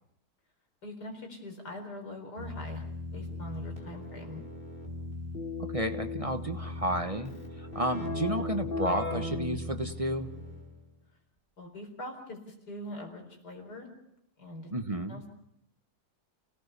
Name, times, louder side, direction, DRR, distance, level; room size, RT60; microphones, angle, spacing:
voice 1, 0.8-2.8 3.1-4.4 11.6-13.9 14.4-14.8 15.1-15.3, left 1 dB, 80° left, 3 dB, 4.8 m, -42 dB
Keyboard (musical), 2.4-10.8, left 2 dB, 35° left, 4.4 m, -37 dB
voice 2, 5.7-10.3 14.7-15.2, right 1 dB, 25° right, 6 dB, 1.1 m, -32 dB
29.5 x 18.0 x 6.9 m, 0.78 s
omnidirectional pair, 1.7 m